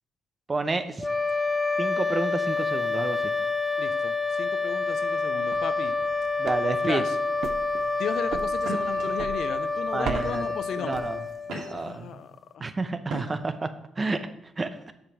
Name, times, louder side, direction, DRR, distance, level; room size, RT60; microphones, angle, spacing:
voice 1, 0.5-1.1 1.8-3.3 6.4-7.0 9.9-10.5 10.8-11.2 11.7-12.2 12.6-14.8, right 3 dB, 25° right, 10 dB, 0.7 m, -30 dB
sound 1, 1.0-11.9, left 3 dB, 5° left, 0.5 m, -28 dB
voice 2, 3.8-5.9 6.8-7.2 8.0-11.0 11.7-12.7, left 8 dB, 70° left, 11 dB, 0.6 m, -35 dB
sound 2, 5.3-11.6, right 6 dB, 65° right, 0.7 m, -40 dB
sound 3, 8.6-9.0 9.7-9.8 10.1-10.6 11.1-12.0 13.0-13.6, right 2 dB, 85° right, 2.5 m, -38 dB
7.2 x 5.2 x 6.0 m, 0.80 s
cardioid pair, 90°, 0 cm